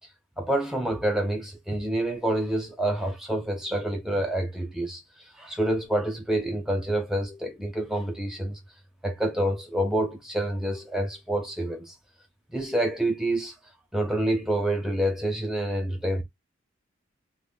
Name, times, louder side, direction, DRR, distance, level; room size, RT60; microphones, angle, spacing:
voice 1, 0.4-8.6 9.0-11.9 12.5-13.5 13.9-16.2, right 1 dB, ahead, 0.4 m, -27 dB
2.5 x 2.1 x 3.6 m
head